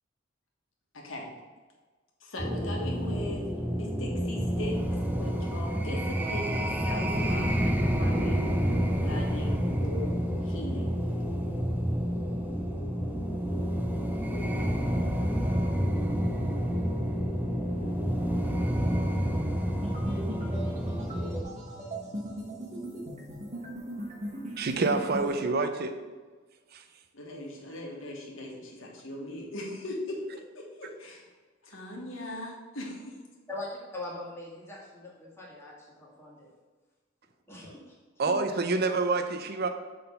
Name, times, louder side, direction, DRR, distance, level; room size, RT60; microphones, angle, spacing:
voice 1, 0.9-1.3 2.2-8.6 9.0-10.1 10.4-10.9 27.1-30.2 30.5-31.3 31.6-33.1, left 1 dB, 80° left, 0 dB, 1.4 m, -39 dB
sound 1, 2.4-21.4, equal, 10° right, 0.6 m, -29 dB
sound 2, 19.8-25.4, right 1 dB, 35° right, 1.3 m, -38 dB
voice 2, 24.6-26.0 26.7-26.8 38.2-39.7, right 3 dB, 50° right, 7 dB, 0.6 m, -27 dB
voice 3, 33.5-36.5 37.5-38.0 38.3-38.4, left 2 dB, 15° left, -5 dB, 1.7 m, -41 dB
6.7 x 3.8 x 5.3 m, 1.4 s
head